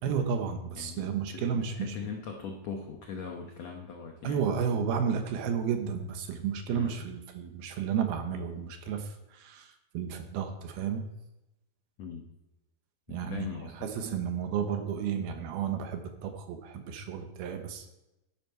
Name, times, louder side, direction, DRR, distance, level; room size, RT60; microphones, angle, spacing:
voice 1, 0.0-2.0 4.2-11.0 13.1-13.5 13.8-17.9, right 7 dB, 75° right, 6 dB, 2.9 m, -32 dB
voice 2, 0.7-4.5 6.7-7.1 12.0-12.3 13.1-13.7, left 5 dB, 90° left, 2 dB, 1.4 m, -40 dB
12.5 x 11.0 x 4.6 m, 0.96 s
omnidirectional pair, 4.7 m